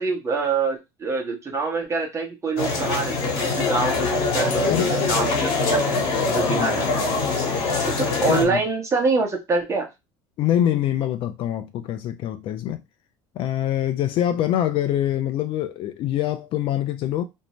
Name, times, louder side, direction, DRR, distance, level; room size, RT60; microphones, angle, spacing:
voice 1, 0.0-7.0 8.0-9.9, right 4 dB, 25° right, 1.0 m, -25 dB
sound 1, 2.6-8.4, left 4 dB, 65° left, 1.1 m, -23 dB
voice 2, 6.3-6.8 8.1-8.6 10.4-12.8 13.4-17.2, left 11 dB, 50° left, 0.4 m, -24 dB
2.6 x 2.1 x 3.0 m
supercardioid pair, 110°, 12 cm